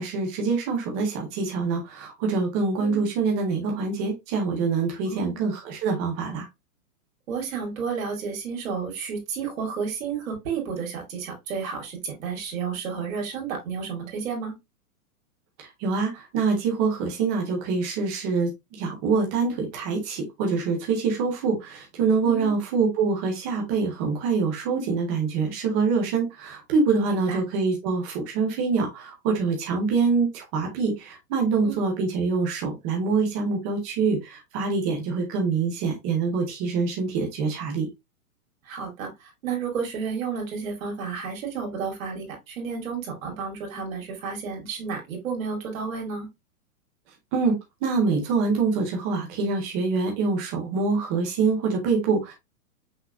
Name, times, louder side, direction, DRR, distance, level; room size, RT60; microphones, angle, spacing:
voice 1, 0.0-6.5 15.6-37.9 47.3-52.3, right 4 dB, 10° right, 0.4 m, -25 dB
voice 2, 5.1-5.4 7.3-14.5 22.2-22.5 27.1-27.4 31.6-31.7 38.7-46.3, right 6 dB, 65° right, 2.4 m, -31 dB
5.8 x 3.6 x 2.3 m
hypercardioid pair, 160°, 44 cm